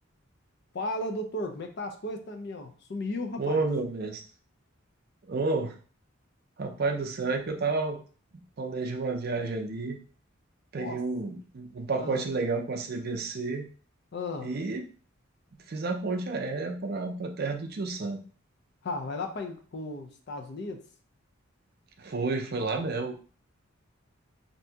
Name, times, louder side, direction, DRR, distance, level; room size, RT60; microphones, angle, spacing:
voice 1, 0.7-3.6 10.7-11.0 12.0-12.2 14.1-14.6 18.8-20.8, left 2 dB, 55° left, 5 dB, 0.5 m, -35 dB
voice 2, 3.4-4.2 5.3-5.7 6.6-8.0 8.6-10.0 10.7-13.7 14.4-14.8 15.7-18.2 22.0-23.2, right 3 dB, 50° right, 3 dB, 0.5 m, -30 dB
2.7 x 2.6 x 3.4 m, 0.40 s
head